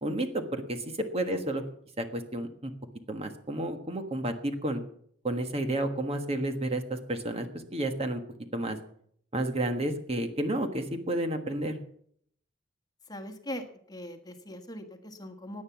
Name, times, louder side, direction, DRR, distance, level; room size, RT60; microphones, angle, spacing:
voice 1, 0.0-0.8 1.1-1.6 2.0-2.7 3.1-4.8 5.2-8.2 8.5-8.8 9.3-11.8, right 1 dB, 35° right, 7 dB, 1.5 m, -31 dB
voice 2, 13.1-15.6, left 1 dB, 20° left, 6 dB, 1.5 m, -41 dB
17.5 x 9.8 x 5.9 m, 0.64 s
head